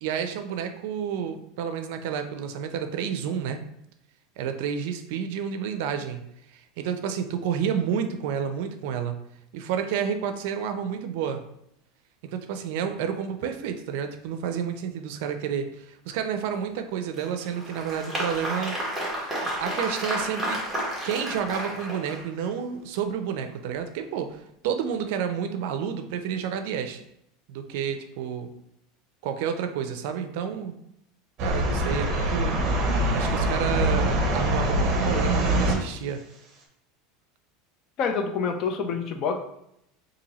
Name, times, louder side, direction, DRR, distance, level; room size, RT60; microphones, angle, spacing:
voice 1, 0.0-3.6 4.4-6.2 6.5-9.2 9.5-11.4 12.2-18.9 19.4-20.6 21.0-27.0 27.5-28.5 29.2-30.8 31.4-32.6 33.1-36.2, right 8 dB, 70° right, 8 dB, 0.4 m, -30 dB
Applause, 17.1-22.5, equal, 5° right, 1.1 m, -31 dB
sound 1, 31.4-35.7, right 1 dB, 40° right, 0.7 m, -24 dB
voice 2, 38.0-39.4, left 5 dB, 40° left, 5 dB, 0.5 m, -27 dB
2.9 x 2.6 x 4.0 m, 0.76 s
supercardioid pair, 145°, 0 cm